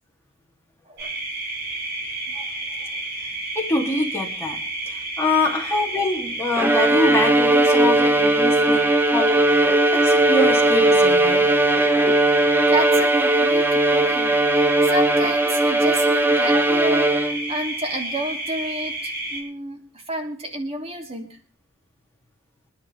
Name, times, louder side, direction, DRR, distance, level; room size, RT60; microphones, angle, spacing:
sound 1, 1.0-19.4, right 2 dB, 60° right, 6.5 m, -31 dB
voice 1, 3.5-4.6 4.9-9.3 9.7-11.5, left 2 dB, 15° left, 0 dB, 3.1 m, -25 dB
Bowed string instrument, 6.6-17.6, right 1 dB, 10° right, 0.7 m, -18 dB
voice 2, 12.7-21.4, right 1 dB, 30° right, 3 dB, 2.9 m, -30 dB
26.0 x 11.0 x 3.6 m, 0.42 s
head